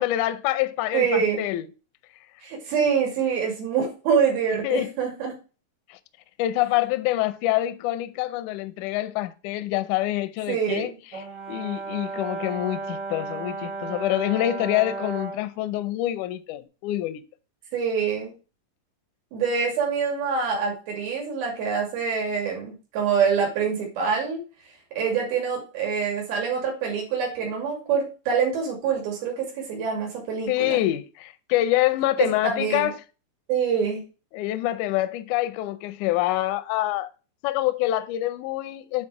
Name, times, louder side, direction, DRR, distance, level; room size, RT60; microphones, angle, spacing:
voice 1, 0.0-1.7 4.6-4.9 5.9-6.0 6.4-10.9 11.5-17.2 30.5-33.0 34.3-37.1 37.4-39.1, left 15 dB, 80° left, 1.8 m, -26 dB
voice 2, 0.9-1.5 2.4-5.4 10.5-11.0 17.7-18.3 19.3-24.4 24.9-30.8 32.2-32.9 33.5-34.0, right 6 dB, 90° right, 4.3 m, -25 dB
Brass instrument, 11.1-15.5, right 3 dB, 50° right, 1.3 m, -34 dB
8.9 x 4.3 x 4.8 m
omnidirectional pair, 4.2 m